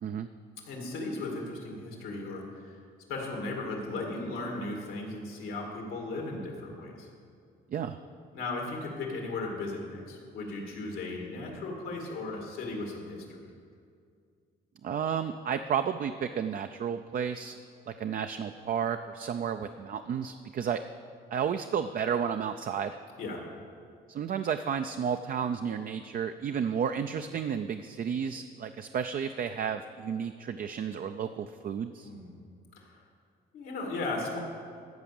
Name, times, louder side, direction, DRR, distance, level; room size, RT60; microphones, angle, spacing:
voice 1, 0.7-2.8 3.1-7.1 8.3-13.5 23.2-23.4 32.0-32.3 32.8-33.0 33.5-34.4, left 2 dB, 90° left, 0 dB, 2.4 m, -36 dB
voice 2, 14.8-17.6 17.9-20.8 21.3-23.0 24.1-32.1, right 7 dB, 45° right, 8 dB, 0.4 m, -32 dB
14.0 x 5.0 x 7.1 m, 2.3 s
cardioid pair, 90°, 20 cm